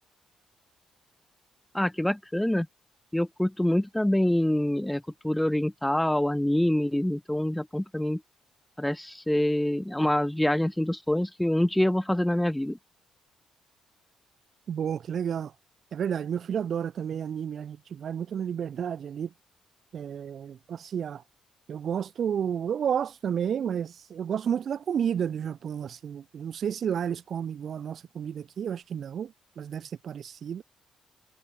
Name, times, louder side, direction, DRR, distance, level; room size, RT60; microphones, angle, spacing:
voice 1, 1.7-2.7 3.1-8.2 8.8-12.8, left 1 dB, 5° left, 1.5 m, -26 dB
voice 2, 14.7-15.5 15.9-19.3 19.9-21.2 21.7-30.6, right 8 dB, 55° right, 6.4 m, -31 dB
cardioid pair, 90°, 0 cm